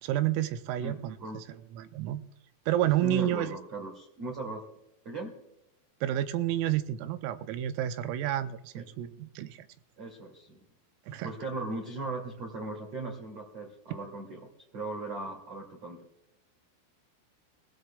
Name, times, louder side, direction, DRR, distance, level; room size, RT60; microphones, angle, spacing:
voice 1, 0.0-1.4 1.7-2.2 2.7-3.6 6.0-9.6 11.1-11.3, right 12 dB, 90° right, 10 dB, 3.4 m, -30 dB
voice 2, 0.8-1.4 2.8-4.6 5.0-5.3 8.7-8.9 10.0-10.6 11.2-16.1, right 2 dB, 40° right, -2 dB, 2.6 m, -38 dB
24.5 x 16.0 x 2.3 m, 0.80 s
omnidirectional pair, 6.0 m